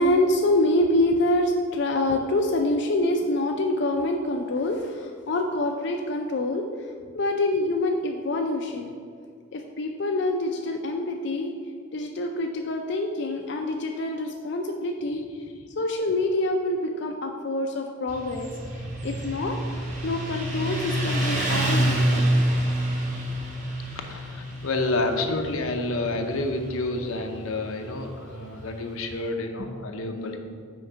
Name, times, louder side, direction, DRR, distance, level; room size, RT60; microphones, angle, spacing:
voice 1, 0.0-9.0 9.5-11.5 11.9-15.2 15.8-19.6 20.0-22.5 29.6-29.7 30.1-30.4, left 1 dB, 55° left, 3 dB, 0.4 m, -26 dB
Motorcycle, 18.1-29.2, right 1 dB, 35° right, 1.1 m, -28 dB
voice 2, 23.9-30.4, left 2 dB, 85° left, 4 dB, 0.7 m, -29 dB
6.3 x 4.5 x 5.6 m, 2.2 s
head